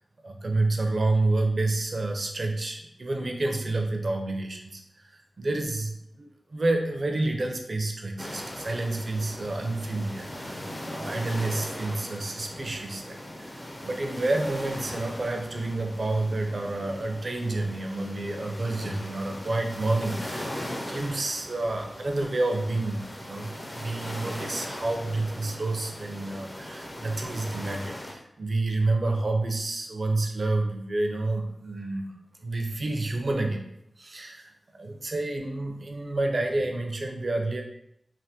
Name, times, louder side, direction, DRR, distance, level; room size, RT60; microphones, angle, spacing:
voice 1, 0.2-13.5 13.8-33.6 34.0-37.6, right 2 dB, 50° right, 2 dB, 0.5 m, -29 dB
sound 1, 8.2-28.1, left 1 dB, 25° left, 0.5 m, -39 dB
3.3 x 2.1 x 2.8 m, 0.76 s
wide cardioid pair, 80°, 0 cm